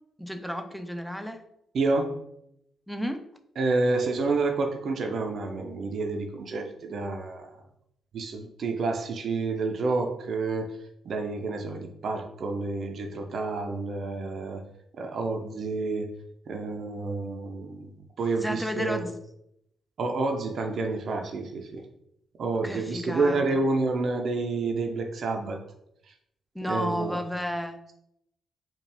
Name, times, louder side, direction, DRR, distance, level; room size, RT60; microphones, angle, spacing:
voice 1, 0.2-1.4 2.9-3.2 18.4-19.1 22.6-23.6 26.5-27.8, equal, ahead, 7 dB, 0.6 m, -32 dB
voice 2, 1.7-2.1 3.6-7.5 8.1-10.7 11.0-14.6 14.9-16.1 16.5-17.9 18.2-19.1 20.0-21.8 22.4-25.6 26.7-27.2, right 3 dB, 60° right, 4 dB, 0.6 m, -29 dB
4.4 x 2.4 x 3.4 m, 0.77 s
supercardioid pair, 50°, 0 cm